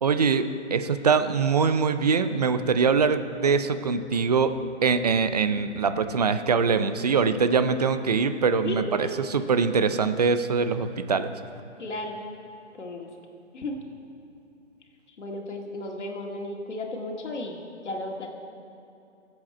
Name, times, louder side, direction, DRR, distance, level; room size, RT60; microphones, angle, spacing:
voice 1, 0.0-4.5 4.8-11.3, right 5 dB, 35° right, 11 dB, 0.5 m, -23 dB
voice 2, 8.6-9.1 11.8-12.3 12.7-13.1 13.5-13.8 15.2-18.3, left 1 dB, 70° left, 1 dB, 2.1 m, -34 dB
22.5 x 7.9 x 4.3 m, 2.8 s
hypercardioid pair, 155°, 36 cm